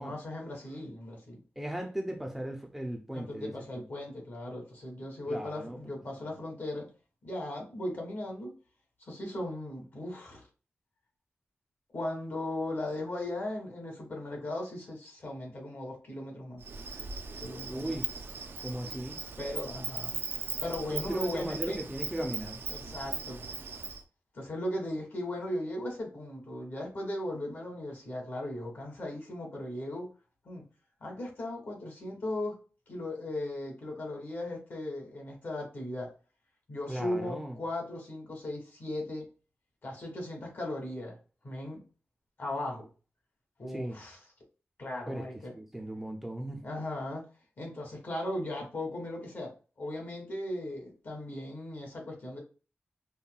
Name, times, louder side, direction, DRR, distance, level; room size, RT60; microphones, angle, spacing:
voice 1, 0.0-1.4 3.1-6.9 7.2-8.5 9.1-10.4 11.9-16.6 17.4-18.0 19.4-20.2 20.6-21.8 22.7-23.5 24.3-30.1 30.4-30.6 31.0-32.5 32.9-36.1 36.7-39.3 39.8-41.2 41.4-41.8 42.4-42.9 43.6-44.2 44.8-45.5 46.6-47.2 47.6-52.4, left 1 dB, 55° left, 1.6 m, -37 dB
voice 2, 1.6-3.8 5.3-5.8 17.7-18.1 18.6-19.2 20.9-22.6 36.9-37.6 43.7-44.0 45.1-45.2 45.6-46.7, right 1 dB, 5° right, 0.5 m, -37 dB
Insect, 16.6-24.0, right 4 dB, 65° right, 0.4 m, -39 dB
5.3 x 2.2 x 2.2 m
wide cardioid pair, 130°, 4 cm